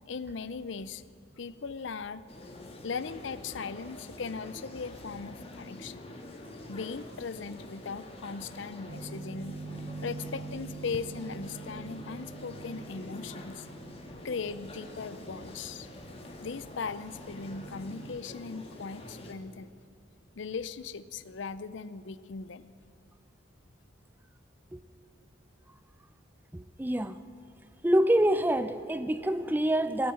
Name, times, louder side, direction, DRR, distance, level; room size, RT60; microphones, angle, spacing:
voice 1, 0.1-1.0 1.4-2.2 2.8-6.0 6.7-9.6 10.0-13.7 14.2-15.9 16.4-19.7 20.4-22.7, left 5 dB, 65° left, 16 dB, 0.5 m, -38 dB
sound 1, 2.3-19.3, left 1 dB, 30° left, 1.6 m, -46 dB
sound 2, 8.9-18.2, right 3 dB, 70° right, 0.8 m, -45 dB
voice 2, 26.5-27.2 27.8-30.1, right 1 dB, 10° right, 13 dB, 0.4 m, -26 dB
17.5 x 9.4 x 8.7 m, 2.5 s
head